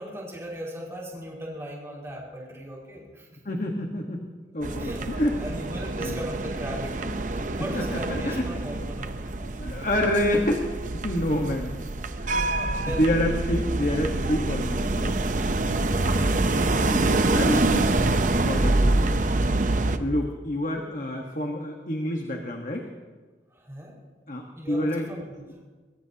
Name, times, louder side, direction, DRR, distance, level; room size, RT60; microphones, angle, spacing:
voice 1, 0.0-3.3 4.8-5.0 5.4-7.1 7.6-9.1 11.3-11.4 12.0-13.2 15.9-16.3 23.5-23.9 24.6-25.3, equal, 15° right, -3 dB, 5.3 m, -38 dB
voice 2, 3.4-4.3 4.5-5.6 6.0-6.2 7.4-8.6 9.2-10.7 10.9-11.9 12.2-12.3 12.6-15.2 16.8-19.3 20.0-22.9 24.3-25.1, left 1 dB, 45° left, 1 dB, 1.4 m, -28 dB
sound 1, 4.6-20.0, right 2 dB, 45° right, 0.8 m, -26 dB
23.0 x 21.5 x 2.9 m, 1.4 s
head